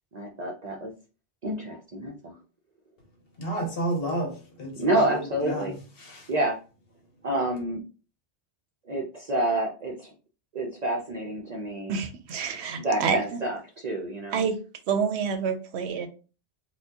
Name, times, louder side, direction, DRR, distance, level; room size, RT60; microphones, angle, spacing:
voice 1, 0.1-0.9 1.4-2.4 4.8-5.7 6.3-6.6 7.2-7.8 8.9-10.1 10.5-12.0 12.8-14.5, right 1 dB, 50° right, 0.5 m, -28 dB
voice 2, 3.4-6.3, right 1 dB, 60° left, 1.1 m, -31 dB
voice 3, 11.9-13.2 14.3-14.6 14.9-16.1, right 6 dB, 75° right, 0.8 m, -28 dB
4.3 x 2.2 x 2.7 m
omnidirectional pair, 1.2 m